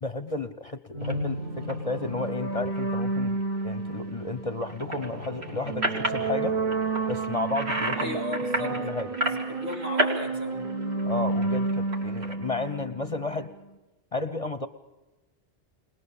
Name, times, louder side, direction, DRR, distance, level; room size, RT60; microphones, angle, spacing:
voice 1, 0.0-6.6 7.1-8.2 8.6-9.1 11.0-13.5 14.1-14.7, left 3 dB, 35° left, 12 dB, 0.8 m, -32 dB
sound 1, 0.9-13.4, right 3 dB, 40° right, 1.5 m, -31 dB
sound 2, 1.0-1.1 1.7-1.9 2.4-2.8 4.6-6.3 6.7-8.1 8.3-10.2 10.5-12.3, right 1 dB, 65° right, 2.9 m, -31 dB
voice 2, 7.9-8.8 9.2-10.7, left 1 dB, 80° right, -2 dB, 4.3 m, -36 dB
22.0 x 20.0 x 7.1 m, 1.1 s
omnidirectional pair, 1.2 m